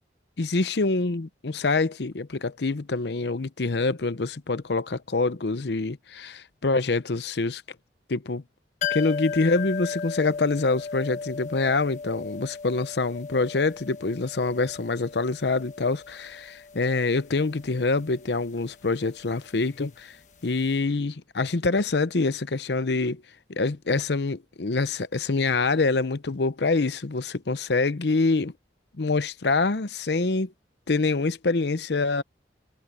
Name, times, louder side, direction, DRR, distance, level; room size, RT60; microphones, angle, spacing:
voice 1, 0.4-7.6 8.1-8.4 8.9-20.2 20.4-23.2 23.5-28.5 29.0-30.5 30.9-32.2, left 3 dB, 70° left, 0.8 m, -25 dB
sound 1, 8.8-20.4 20.7-20.8, left 6 dB, 45° left, 1.4 m, -37 dB
head